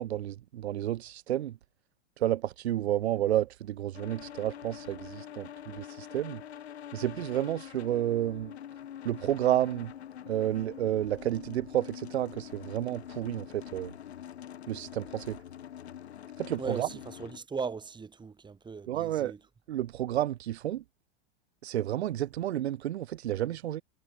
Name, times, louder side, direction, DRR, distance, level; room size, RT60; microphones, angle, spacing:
voice 1, 0.0-1.6 2.2-6.4 6.9-8.5 9.0-9.9 10.3-13.9 14.7-15.4 16.4-16.9 18.9-19.3 19.7-20.8 21.6-23.8, right 12 dB, 90° right, 0.6 m, -31 dB
sound 1, 3.9-17.4, left 10 dB, 85° left, 2.7 m, -45 dB
voice 2, 16.6-19.4, right 5 dB, 15° right, 3.4 m, -38 dB
hypercardioid pair, 120°, 32 cm